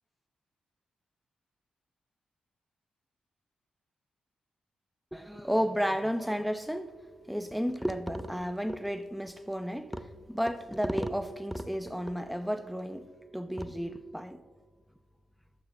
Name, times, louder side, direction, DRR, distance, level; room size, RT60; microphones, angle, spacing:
voice 1, 5.1-6.9 7.3-13.1 13.3-14.4, equal, ahead, 0.5 m, -32 dB
7.1 x 6.4 x 3.7 m
supercardioid pair, 45°, 3 cm